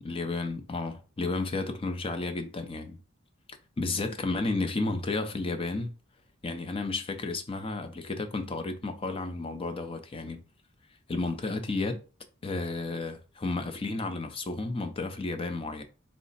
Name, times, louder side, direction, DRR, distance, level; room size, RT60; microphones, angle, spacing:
voice 1, 0.0-3.0 3.8-5.9 6.4-10.4 11.1-12.0 12.4-15.8, left 3 dB, 25° left, 0.4 m, -32 dB
3.9 x 2.0 x 4.0 m
head